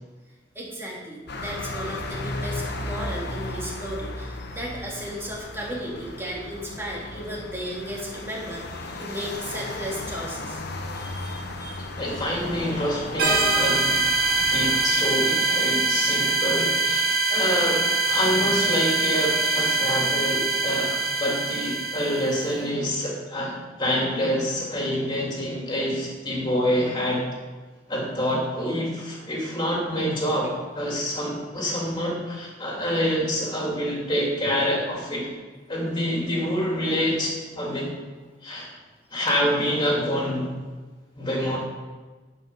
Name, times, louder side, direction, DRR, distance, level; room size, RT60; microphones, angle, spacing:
voice 1, 0.5-10.6 10.9-12.2 17.1-17.3 18.3-18.4 19.2-19.7, equal, 15° right, -3 dB, 2.1 m, -35 dB
sound 1, 1.3-14.9, left 2 dB, 60° left, 1.0 m, -35 dB
voice 2, 11.4-14.0 14.4-27.2 27.9-35.3 35.7-37.9 38.4-38.7 39.1-40.5 41.2-41.6, equal, 25° left, -3 dB, 2.8 m, -27 dB
sound 2, 13.2-22.6, right 3 dB, 55° right, 1.6 m, -23 dB
11.0 x 4.9 x 5.7 m, 1.3 s
head